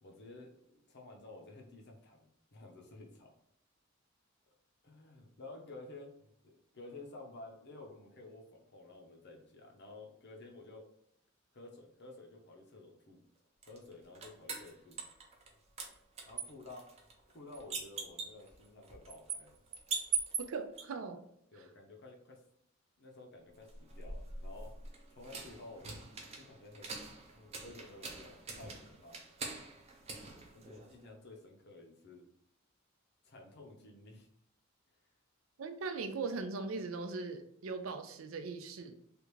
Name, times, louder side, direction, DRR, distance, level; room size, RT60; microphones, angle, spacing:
voice 1, 0.0-3.3 4.8-10.8 11.5-13.2 13.7-15.0 16.2-19.6 21.5-22.4 23.0-26.1 26.4-26.9 27.3-29.2 30.5-32.2 33.2-34.3, left 2 dB, 55° left, 1 dB, 0.8 m, -52 dB
sound 1, 13.6-15.5 15.8-20.8 23.6-31.1, right 5 dB, 30° right, 0.6 m, -42 dB
voice 2, 20.4-21.2 21.5-21.6 35.6-38.9, right 4 dB, 85° right, 7 dB, 0.5 m, -40 dB
3.3 x 2.5 x 3.1 m, 0.72 s
head